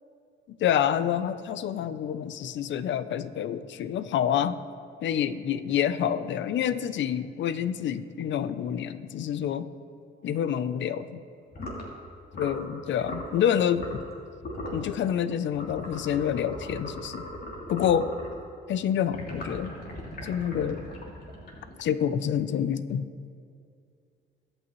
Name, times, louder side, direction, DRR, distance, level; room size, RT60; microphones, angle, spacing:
voice 1, 0.6-4.6 5.0-9.7 10.2-11.2 12.3-14.0 14.7-17.2 17.7-18.1 18.7-19.7 20.2-20.8 21.8-23.1, left 9 dB, 70° left, 13 dB, 0.7 m, -27 dB
sound 1, 11.5-11.9 12.3-12.6 13.0-13.3 13.7-14.1 14.4-14.8 15.5-18.4 19.1-21.9, left 1 dB, 50° left, 2.8 m, -38 dB
22.5 x 8.9 x 3.2 m, 2.4 s
cardioid pair, 90°, 20 cm